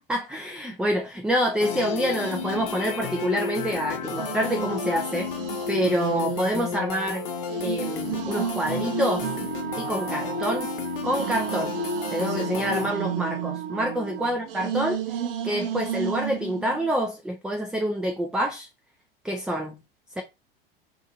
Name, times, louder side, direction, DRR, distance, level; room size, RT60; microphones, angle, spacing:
voice 1, 0.0-5.3 5.7-7.2 7.6-9.3 9.8-10.7 11.0-11.7 12.1-15.0 15.4-18.7 19.2-19.8 20.2-20.3, equal, 5° right, 0.3 m, -27 dB
sound 1, 1.6-12.9, left 6 dB, 65° left, 0.6 m, -32 dB
sound 2, 2.2-3.5 4.0-10.5 11.0-16.9, right 10 dB, 70° right, 0.6 m, -34 dB
Wind instrument woodwind instrument, 9.2-14.3, right 9 dB, 40° right, 0.8 m, -35 dB
2.8 x 2.5 x 2.5 m
hypercardioid pair, 85°, 29 cm